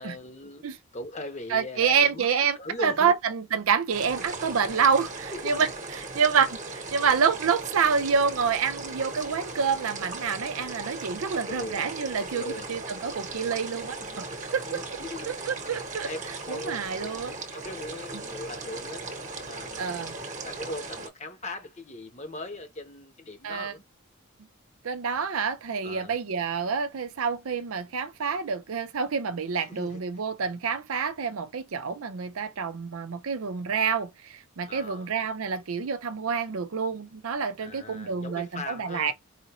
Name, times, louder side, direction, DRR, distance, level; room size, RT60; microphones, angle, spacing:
voice 1, 0.0-2.3 2.5-3.1 5.3-5.7 11.5-11.9 12.3-12.8 13.0-13.1 14.0-14.3 14.7-15.3 15.6-15.7 16.0-16.2 16.4-19.1 19.4-23.8 25.8-26.1 29.7-30.0 34.6-35.1 37.6-39.1, left 2 dB, 35° left, 0.9 m, -40 dB
voice 2, 1.5-5.7 5.9-14.2 14.5-15.0 15.3-16.1 16.5-17.3 18.1-18.2 19.8-20.2 23.4-23.7 24.8-39.1, right 6 dB, 80° right, 0.5 m, -27 dB
sound 1, 3.9-21.1, right 3 dB, 35° right, 1.1 m, -38 dB
4.9 x 2.5 x 3.0 m
head